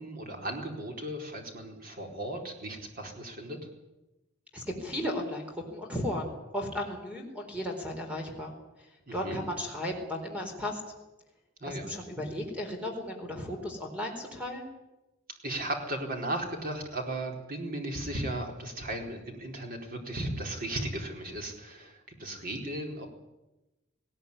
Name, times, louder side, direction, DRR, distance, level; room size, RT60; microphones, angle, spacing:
voice 1, 0.0-3.7 9.1-9.4 11.6-11.9 15.4-23.1, right 1 dB, 45° right, 2 dB, 4.4 m, -36 dB
voice 2, 4.5-8.5 8.8-10.8 11.6-14.7, left 1 dB, 5° right, 2 dB, 4.1 m, -35 dB
19.0 x 18.0 x 9.9 m, 1.0 s
head